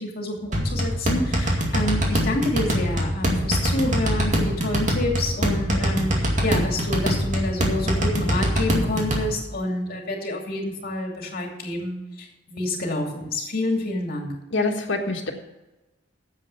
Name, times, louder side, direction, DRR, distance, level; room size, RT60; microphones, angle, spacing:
voice 1, 0.0-14.3, left 1 dB, 55° left, 1 dB, 2.7 m, -28 dB
sound 1, 0.5-9.2, equal, 45° right, 2.3 m, -24 dB
voice 2, 14.5-15.3, left 3 dB, 90° left, 1 dB, 1.6 m, -25 dB
10.0 x 7.6 x 6.9 m, 1.1 s
head